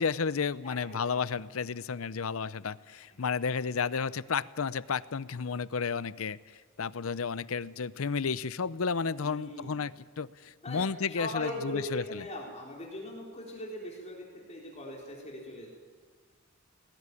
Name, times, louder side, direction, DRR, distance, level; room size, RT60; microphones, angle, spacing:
voice 1, 0.0-6.4 6.8-12.2, left 5 dB, 75° left, 18 dB, 0.6 m, -32 dB
voice 2, 0.6-1.5 9.2-9.9 10.6-10.8 11.1-15.7, left 1 dB, 30° left, -3 dB, 4.3 m, -40 dB
19.5 x 19.5 x 9.8 m, 1.5 s
head